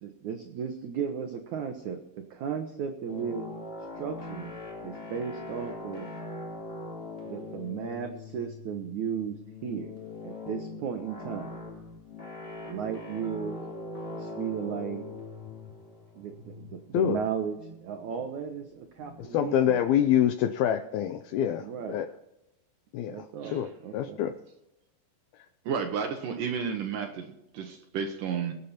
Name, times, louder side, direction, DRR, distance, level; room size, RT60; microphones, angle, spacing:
voice 1, 0.0-3.4 4.0-4.5 4.8-6.1 7.3-9.4 9.6-9.9 10.2-11.5 12.6-13.6 14.1-15.0 16.1-19.8 21.6-22.0 23.0-24.2, right 7 dB, 85° right, 5 dB, 1.6 m, -35 dB
sound 1, 3.1-19.6, left 2 dB, 15° left, 2.7 m, -42 dB
voice 2, 19.3-22.1 22.9-23.2 23.5-23.7 23.9-24.3, left 10 dB, 80° left, 9 dB, 2.2 m, -25 dB
voice 3, 25.7-28.5, right 6 dB, 70° right, 5 dB, 2.1 m, -32 dB
23.0 x 8.4 x 4.3 m, 0.89 s
omnidirectional pair, 5.1 m